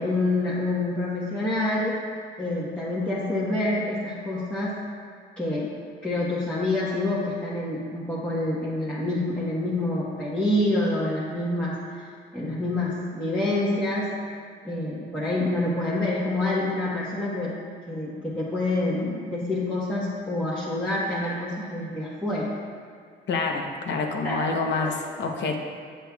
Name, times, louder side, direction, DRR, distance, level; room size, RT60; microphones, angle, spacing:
voice 1, 0.0-1.9 2.4-4.8 5.4-5.7 6.0-12.0 12.3-14.2 14.6-17.6 17.9-22.5 24.2-25.0, left 2 dB, 5° left, -9 dB, 1.3 m, -27 dB
voice 2, 23.3-25.6, left 4 dB, 65° left, 2 dB, 0.9 m, -27 dB
8.2 x 7.7 x 2.3 m, 2.2 s
cardioid pair, 90°, 20 cm